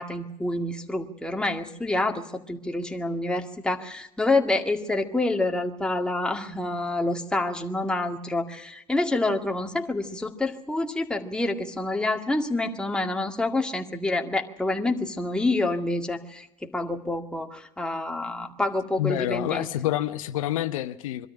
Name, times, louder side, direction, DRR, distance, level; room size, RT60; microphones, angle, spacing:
voice 1, 0.0-19.7, left 2 dB, 5° left, 3 dB, 2.0 m, -27 dB
voice 2, 19.0-21.3, left 13 dB, 80° left, 10 dB, 0.9 m, -28 dB
23.0 x 13.0 x 10.0 m, 0.80 s
hypercardioid pair, 90°, 17 cm